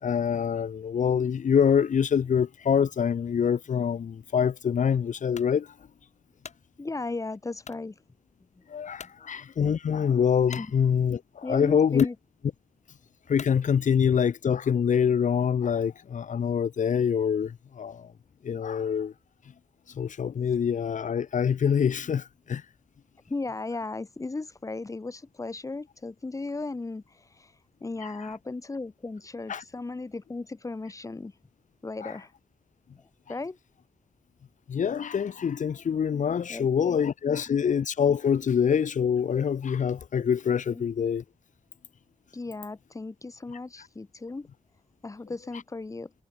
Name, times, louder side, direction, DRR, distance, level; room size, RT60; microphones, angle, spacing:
voice 1, 0.0-5.7 8.7-12.1 13.3-18.1 18.4-19.1 19.9-22.6 28.0-28.1 29.5-29.6 32.0-32.1 34.7-41.2, left 7 dB, 80° left, 1.3 m, -25 dB
sound 1, 5.3-5.6 6.1-6.6 7.6-7.9 8.4-8.5 9.0-9.2 10.5-10.7 11.5-11.6 11.9-12.2 13.3-13.6, left 6 dB, 65° left, 2.2 m, -44 dB
voice 2, 6.8-8.0 8.6-8.7 9.2-9.4 10.5-10.7 11.4-12.1 23.3-27.5 27.8-31.3 31.8-32.3 33.0-33.1 33.3-33.6 36.5-37.7 40.7-40.8 42.3-44.5 45.0-46.1, left 3 dB, 25° left, 2.7 m, -36 dB
wide cardioid pair, 165°, 13 cm